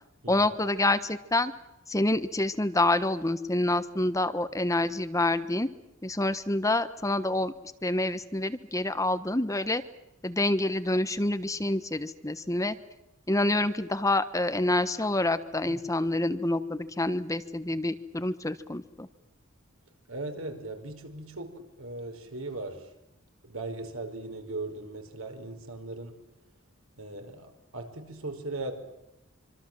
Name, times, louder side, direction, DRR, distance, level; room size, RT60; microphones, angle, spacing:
voice 1, 0.3-1.5 1.9-5.7 6.0-7.5 7.8-9.8 10.2-12.8 13.3-19.1, left 2 dB, 15° left, 1.2 m, -27 dB
voice 2, 20.1-22.9 23.4-26.3 27.0-28.7, right 2 dB, 80° right, 5.3 m, -38 dB
26.0 x 26.0 x 7.7 m
head